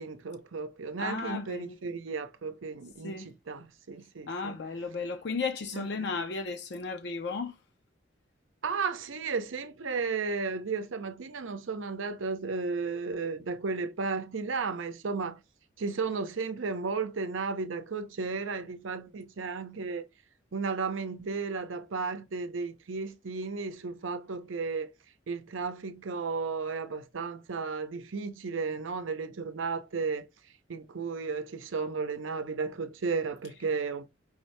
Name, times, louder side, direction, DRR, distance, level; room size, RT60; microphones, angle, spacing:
voice 1, 0.0-4.6 5.7-6.2 8.6-15.4 15.8-20.1 20.5-24.9 25.3-30.3 30.7-34.1, right 4 dB, 80° right, 0.7 m, -34 dB
voice 2, 1.0-1.8 3.0-3.3 4.3-7.6, left 4 dB, 55° left, 0.5 m, -34 dB
5.0 x 2.6 x 3.2 m
head